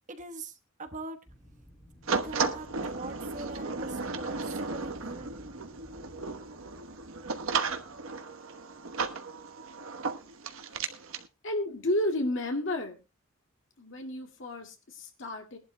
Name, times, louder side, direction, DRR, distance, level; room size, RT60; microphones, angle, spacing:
voice 1, 0.1-1.2 2.1-5.6, right 2 dB, 40° right, 7 dB, 1.2 m, -43 dB
Wind, 1.3-8.2, equal, 10° left, 4.1 m, -53 dB
sound 1, 2.1-11.3, right 4 dB, 90° right, 1.1 m, -34 dB
voice 2, 11.4-13.0 13.8-15.6, left 1 dB, 65° left, 3 dB, 2.2 m, -32 dB
21.5 x 11.5 x 2.2 m, 0.26 s
head